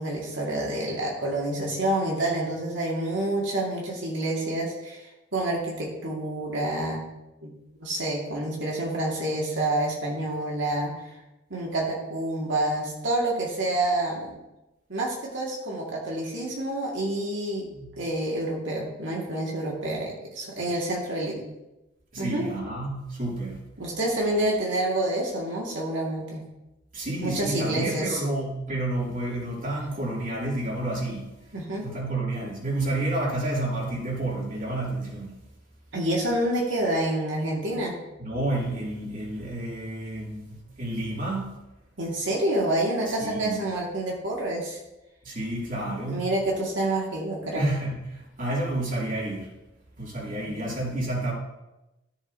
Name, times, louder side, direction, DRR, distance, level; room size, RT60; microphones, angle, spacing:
voice 1, 0.0-5.1 5.3-7.1 7.4-7.5 7.8-10.9 11.5-14.4 14.9-17.7 18.0-21.5 22.2-22.5 23.8-26.4 27.2-28.2 31.5-31.9 35.9-38.0 42.0-44.8 45.9-47.7 50.5-50.8, right 1 dB, 90° right, -3 dB, 2.0 m, -28 dB
voice 2, 22.1-23.6 26.9-31.5 31.8-35.3 38.2-41.5 43.1-43.6 45.2-46.2 47.5-49.5 50.0-51.3, right 2 dB, 45° right, -4 dB, 2.9 m, -30 dB
13.5 x 7.1 x 2.8 m, 0.97 s
head